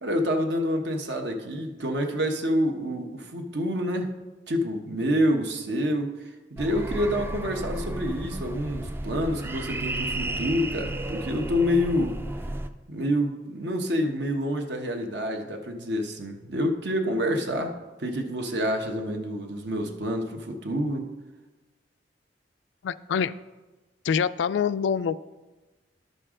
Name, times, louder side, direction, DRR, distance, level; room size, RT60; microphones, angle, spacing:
voice 1, 0.0-4.1 4.5-6.2 6.5-12.2 12.9-17.7 18.0-21.1, equal, 70° right, 4 dB, 1.1 m, -27 dB
sound 1, 6.6-12.7, right 1 dB, 15° right, 0.3 m, -33 dB
voice 2, 22.8-23.3 24.0-25.2, left 7 dB, 85° left, 14 dB, 0.3 m, -25 dB
11.5 x 6.7 x 3.7 m, 1.2 s
head